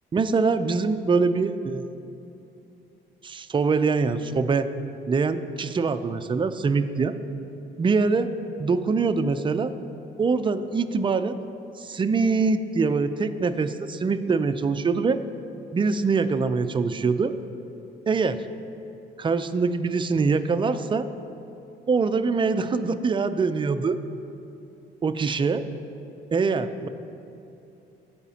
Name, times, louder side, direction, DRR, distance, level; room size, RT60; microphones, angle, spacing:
voice 1, 0.1-1.8 3.2-4.7 5.1-7.2 7.8-8.3 8.6-9.7 10.2-11.4 11.8-15.2 15.7-17.3 18.1-18.4 19.2-21.1 21.9-24.0 25.0-25.6 26.3-26.9, right 4 dB, 25° right, 10 dB, 0.4 m, -23 dB
14.5 x 5.0 x 2.8 m, 2.8 s
cardioid pair, 90°, 20 cm